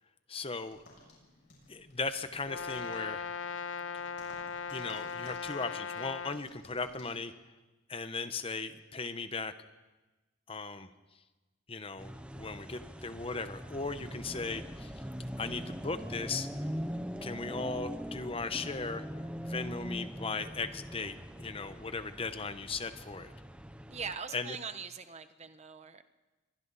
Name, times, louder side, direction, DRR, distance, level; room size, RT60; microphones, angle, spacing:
voice 1, 0.3-0.8 1.7-3.2 4.7-7.3 7.9-9.5 10.5-10.9 11.7-15.0 15.4-16.5 17.2-19.1 19.4-23.3 24.3-24.6, left 4 dB, 30° left, 11 dB, 1.0 m, -37 dB
sound 1, 0.7-7.1, left 2 dB, 55° left, 7.1 m, -59 dB
Brass instrument, 2.4-6.4, left 6 dB, 80° left, 0.6 m, -38 dB
sound 2, 12.0-24.2, equal, 5° right, 0.8 m, -42 dB
voice 2, 23.9-26.0, right 6 dB, 35° right, 10 dB, 1.1 m, -41 dB
28.0 x 23.5 x 4.1 m, 1.2 s
head